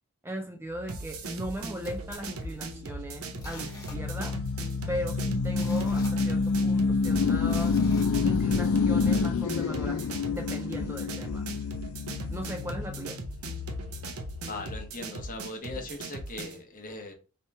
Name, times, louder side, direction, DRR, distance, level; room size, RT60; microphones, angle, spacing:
voice 1, 0.2-4.4 4.9-7.8 8.2-10.0 10.3-11.5 12.3-13.2, equal, 10° right, 0.4 m, -38 dB
sound 1, 0.8-14.9, left 4 dB, 75° left, 0.4 m, -29 dB
sound 2, 0.9-16.6, right 2 dB, 85° right, 0.7 m, -40 dB
sound 3, 1.8-2.9 3.3-4.5 4.8-4.9 5.3-6.8 7.4-8.7 9.2-9.3, left 2 dB, 15° left, 1.2 m, -48 dB
voice 2, 14.4-17.1, left 2 dB, 40° left, 0.8 m, -39 dB
3.4 x 2.9 x 4.4 m
head